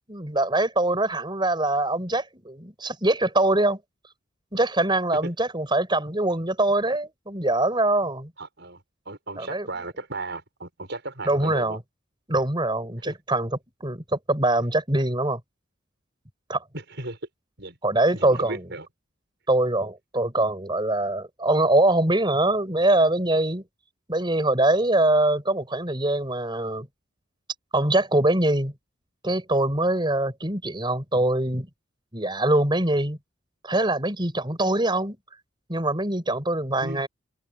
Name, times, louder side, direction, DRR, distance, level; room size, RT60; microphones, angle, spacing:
voice 1, 0.1-3.8 4.5-8.3 9.4-9.7 11.3-11.8 12.3-13.5 13.8-15.4 16.5-16.6 17.8-18.6 19.5-23.6 24.1-26.9 27.7-28.7 29.2-31.7 32.1-33.2 33.6-35.2 35.7-37.1, right 2 dB, 25° right, 5.9 m, -23 dB
voice 2, 8.4-11.8 13.1-13.2 16.7-17.2 17.6-17.8 18.1-18.9 36.8-37.0, right 2 dB, 55° right, 7.4 m, -36 dB
head